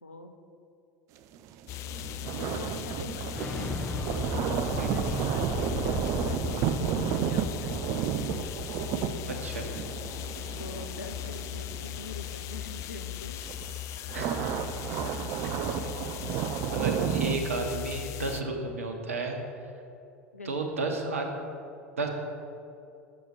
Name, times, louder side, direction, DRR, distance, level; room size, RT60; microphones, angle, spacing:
voice 1, 0.0-0.3 2.4-3.7 4.7-6.7 7.0-7.8 9.1-9.4 10.6-13.6 20.3-20.7, left 3 dB, 85° left, 6 dB, 0.6 m, -44 dB
sound 1, 1.3-12.8 13.3-17.4, right 8 dB, 45° right, 0.4 m, -32 dB
sound 2, 1.7-18.4, left 12 dB, 40° left, 0.4 m, -38 dB
Explosion, 3.3-8.8, left 2 dB, 15° left, 1.2 m, -36 dB
voice 2, 4.8-5.2 9.4-9.6 14.1-14.3 15.0-15.1 15.4-15.6 16.2-16.5 16.7-19.4 20.4-21.3 22.0-22.1, right 3 dB, 75° right, 3 dB, 1.0 m, -33 dB
6.9 x 6.4 x 5.0 m, 2.7 s
figure-of-eight pair, 75°, 7 cm